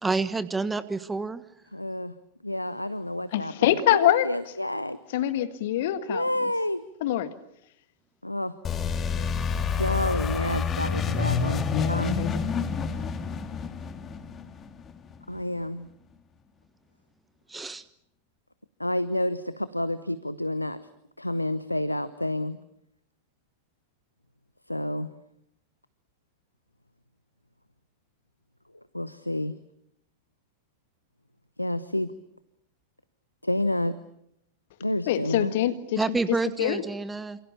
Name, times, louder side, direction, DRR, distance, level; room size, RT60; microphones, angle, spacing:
voice 1, 0.0-1.4 17.5-17.8 36.0-37.4, right 3 dB, 10° right, 14 dB, 1.3 m, -28 dB
voice 2, 1.7-2.1 2.4-5.0 6.1-6.9 8.2-8.5 9.7-12.2 15.3-15.9 18.8-20.8 21.2-22.6 24.7-25.1 28.9-29.5 31.6-32.1 33.4-34.0 34.8-35.5, left 1 dB, 85° left, 15 dB, 1.1 m, -29 dB
voice 3, 3.3-4.3 5.1-6.3 7.0-7.3 11.1-11.4 11.7-12.4 35.1-36.2 36.6-36.8, left 13 dB, 55° left, 11 dB, 1.7 m, -25 dB
sound 1, 8.6-15.2, left 5 dB, 25° left, 2.4 m, -28 dB
29.0 x 28.0 x 7.0 m, 0.76 s
figure-of-eight pair, 90°, 0 cm